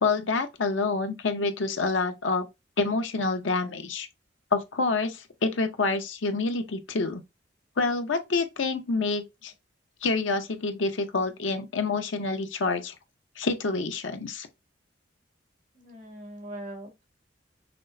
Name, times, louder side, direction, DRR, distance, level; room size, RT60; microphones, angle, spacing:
voice 1, 0.0-2.5 2.8-4.1 4.5-7.2 7.8-9.5 10.0-12.9 13.4-14.5, left 3 dB, 80° left, 0.7 m, -27 dB
voice 2, 15.8-17.0, right 1 dB, 45° right, 1.6 m, -41 dB
6.0 x 2.1 x 2.6 m
head